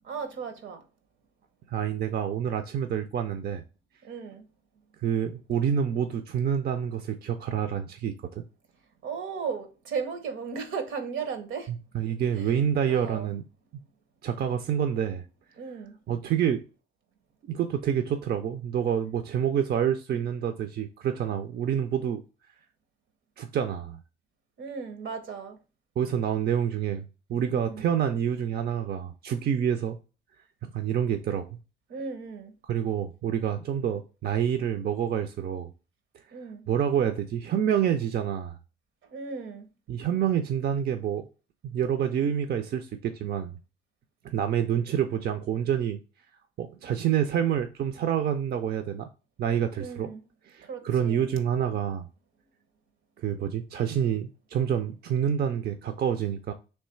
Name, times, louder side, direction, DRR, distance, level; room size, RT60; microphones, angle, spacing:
voice 1, 0.1-0.9 4.0-4.5 9.0-11.7 12.3-12.5 12.9-13.3 15.6-16.0 24.6-25.6 27.5-27.8 31.9-32.6 36.3-36.7 39.1-39.7 49.8-50.3 50.6-51.3, right 5 dB, 80° right, 0.9 m, -36 dB
voice 2, 1.7-3.6 5.0-8.4 11.9-13.4 14.2-15.2 16.1-16.6 17.4-22.2 23.4-24.0 26.0-27.0 27.3-30.0 30.7-31.5 32.7-35.7 36.7-38.6 39.9-41.3 41.6-43.5 44.2-46.0 46.6-49.1 49.4-50.1 50.5-52.1 53.2-56.5, right 9 dB, 55° right, 0.5 m, -27 dB
3.2 x 3.1 x 4.3 m
cardioid pair, 90°, 20 cm